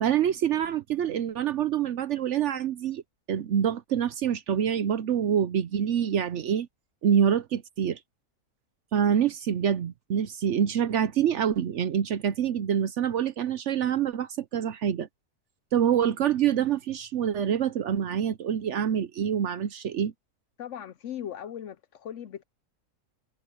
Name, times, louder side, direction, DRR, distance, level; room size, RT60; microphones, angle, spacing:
voice 1, 0.0-3.0 3.3-6.7 7.0-8.0 8.9-15.1 15.7-20.1, right 9 dB, 60° right, 0.8 m, -26 dB
voice 2, 20.6-22.4, left 10 dB, 65° left, 0.8 m, -38 dB
omnidirectional pair, 1.6 m